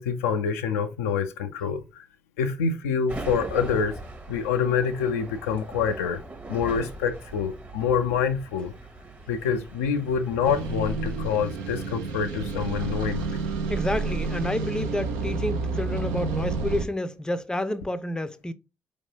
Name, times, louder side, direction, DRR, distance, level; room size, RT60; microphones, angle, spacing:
voice 1, 0.0-2.0 2.4-4.0 4.3-6.2 6.5-8.7 9.3-13.4, left 6 dB, 75° left, 0.4 m, -26 dB
sound 1, 3.1-11.9, right 2 dB, 20° right, 0.9 m, -41 dB
sound 2, 10.4-16.9, right 4 dB, 75° right, 0.6 m, -30 dB
voice 2, 13.7-18.5, left 1 dB, 10° left, 0.5 m, -29 dB
4.4 x 3.0 x 2.8 m
figure-of-eight pair, 40°, 7 cm